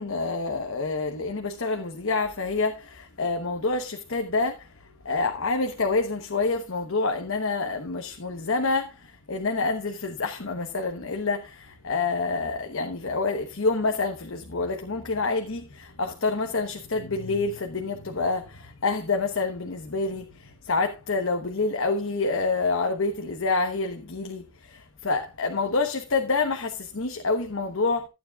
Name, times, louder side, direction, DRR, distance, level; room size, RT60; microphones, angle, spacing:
voice 1, 0.0-4.7 5.0-28.1, left 3 dB, 65° left, 1.1 m, -27 dB
14.5 x 9.4 x 2.4 m
head